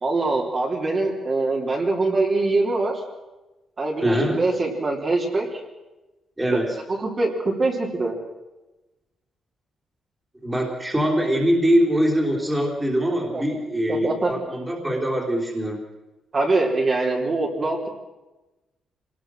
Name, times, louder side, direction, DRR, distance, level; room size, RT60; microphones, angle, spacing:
voice 1, 0.0-3.0 3.8-5.6 7.0-8.1 13.3-13.4 13.9-14.3 16.3-17.9, right 2 dB, 30° right, -1 dB, 3.3 m, -23 dB
voice 2, 4.0-4.4 6.4-6.8 10.4-15.8, equal, 10° right, 0 dB, 3.5 m, -23 dB
26.0 x 19.5 x 6.3 m, 1.1 s
cardioid pair, 160°, 0 cm